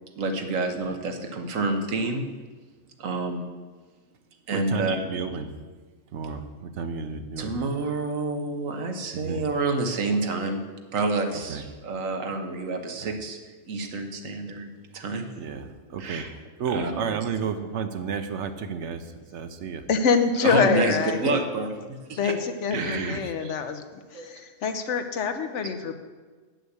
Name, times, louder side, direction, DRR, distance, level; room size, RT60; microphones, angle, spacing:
voice 1, 0.2-2.3 3.0-3.4 4.5-5.3 7.4-10.6 10.9-13.4 13.7-15.2 16.0-16.3 16.6-17.1 20.4-22.4 22.7-23.6 24.1-24.3, right 3 dB, 85° right, 5 dB, 1.4 m, -28 dB
voice 2, 4.5-5.5 6.1-7.5 9.2-9.4 11.5-11.6 15.4-16.2 16.6-19.0 19.3-19.8 22.7-23.2, right 6 dB, 65° right, 9 dB, 1.0 m, -32 dB
voice 3, 19.9-21.4 22.2-23.8 24.1-25.9, left 5 dB, 70° left, 8 dB, 1.0 m, -25 dB
8.0 x 6.3 x 7.9 m, 1.4 s
omnidirectional pair, 1.3 m